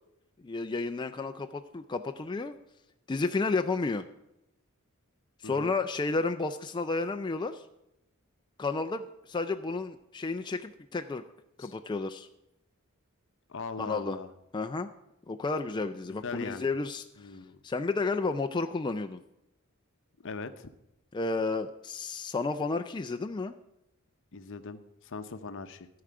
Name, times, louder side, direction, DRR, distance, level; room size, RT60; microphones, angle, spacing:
voice 1, 0.4-2.6 3.1-4.1 5.4-7.7 8.6-11.2 11.6-12.3 13.8-14.2 14.5-14.9 15.3-17.3 17.6-19.2 21.1-23.5, left 3 dB, 20° left, 6 dB, 0.4 m, -32 dB
voice 2, 13.5-14.3 16.1-16.7 17.2-17.6 20.2-20.7 24.3-25.9, left 4 dB, 60° left, 11 dB, 0.8 m, -40 dB
13.5 x 4.9 x 7.6 m, 0.87 s
head